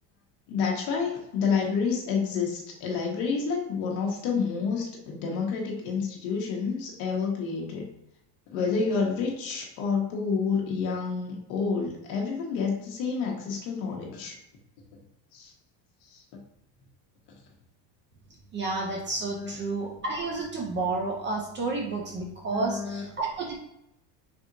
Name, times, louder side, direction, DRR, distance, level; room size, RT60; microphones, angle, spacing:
voice 1, 0.5-7.9 8.5-14.3 15.3-15.5 16.1-16.2 19.3-19.5 22.5-23.0, left 5 dB, 75° left, -1 dB, 1.0 m, -29 dB
voice 2, 18.5-23.6, right 3 dB, 25° right, -1 dB, 0.3 m, -31 dB
3.5 x 2.8 x 2.5 m, 0.83 s
supercardioid pair, 125°, 49 cm